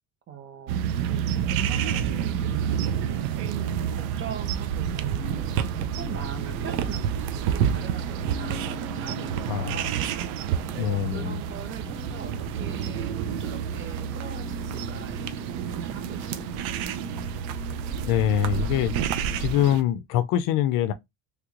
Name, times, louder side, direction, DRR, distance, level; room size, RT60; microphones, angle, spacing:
voice 1, 0.3-10.0 10.7-16.8, right 7 dB, 30° right, 0.8 m, -42 dB
sound 1, 0.7-19.8, right 9 dB, 65° right, 0.6 m, -29 dB
sound 2, 5.2-19.4, left 6 dB, 35° left, 1.2 m, -43 dB
voice 2, 10.8-11.4 18.1-18.9 19.4-20.9, left 10 dB, 60° left, 0.5 m, -24 dB
3.2 x 3.0 x 2.4 m
cardioid pair, 130°, 38 cm